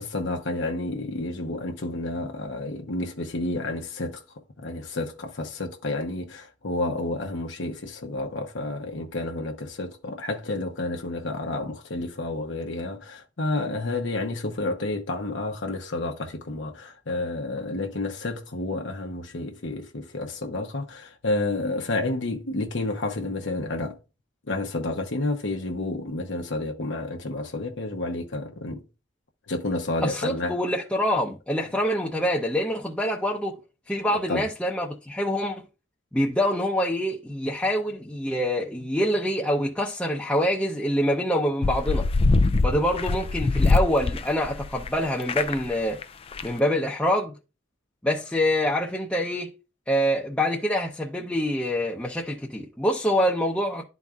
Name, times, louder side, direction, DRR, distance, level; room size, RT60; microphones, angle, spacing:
voice 1, 0.0-4.2 4.6-24.0 24.5-28.8 29.5-30.6 34.1-34.5, left 2 dB, 80° left, 0.9 m, -30 dB
voice 2, 30.0-33.6 33.9-35.6 36.1-42.1 42.6-46.0 46.4-47.3 48.0-49.5 49.9-53.8, equal, 5° left, 0.7 m, -25 dB
sound 1, 41.6-44.9 45.2-45.7 46.0-46.1 46.3-46.5, left 3 dB, 30° left, 0.4 m, -23 dB
12.0 x 4.0 x 2.4 m
head